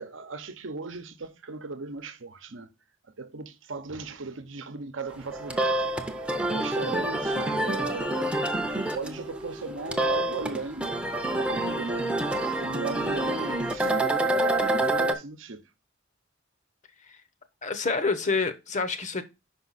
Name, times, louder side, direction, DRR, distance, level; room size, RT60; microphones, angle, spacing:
voice 1, 0.0-2.7 3.2-5.8 6.5-10.9 11.3-15.6, right 3 dB, 70° right, 0.9 m, -37 dB
sound 1, 5.2-15.1, right 1 dB, 5° right, 0.7 m, -27 dB
voice 2, 17.6-19.2, left 4 dB, 35° left, 0.8 m, -27 dB
5.5 x 5.4 x 4.0 m
head